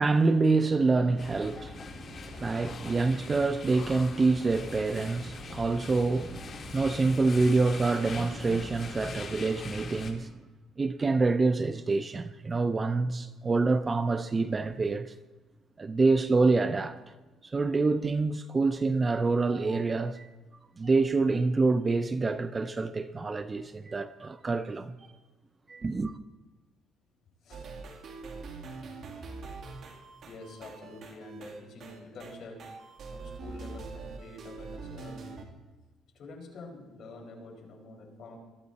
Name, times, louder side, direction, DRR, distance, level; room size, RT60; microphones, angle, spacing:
voice 1, 0.0-10.3 10.8-15.1 15.8-17.0 17.4-20.3 20.8-24.9 25.7-26.2, right 3 dB, 20° right, 0.5 m, -26 dB
sound 1, 1.2-10.1, left 4 dB, 35° left, 2.0 m, -42 dB
sound 2, 27.5-35.4, right 4 dB, 45° right, 2.2 m, -43 dB
voice 2, 30.2-32.6 33.1-35.4 36.1-38.4, left 2 dB, 50° left, 4.8 m, -47 dB
22.0 x 13.0 x 4.1 m
cardioid pair, 155°, 0 cm